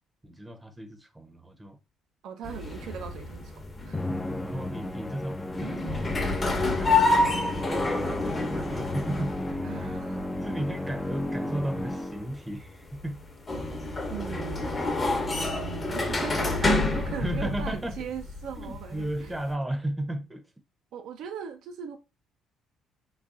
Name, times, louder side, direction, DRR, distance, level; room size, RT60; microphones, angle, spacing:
voice 1, 0.2-1.8 4.4-9.3 9.7-10.0 10.4-13.2 17.2-18.1 18.6-20.4, right 1 dB, 15° right, 0.7 m, -35 dB
voice 2, 2.2-4.0 9.6-10.4 14.1-14.9 15.4-19.3 20.9-22.0, right 7 dB, 75° right, 0.4 m, -39 dB
sound 1, 2.4-19.5, left 2 dB, 30° left, 0.8 m, -29 dB
Musical instrument, 3.9-12.5, left 1 dB, 15° left, 0.4 m, -34 dB
3.9 x 2.2 x 2.4 m
supercardioid pair, 65°, 0 cm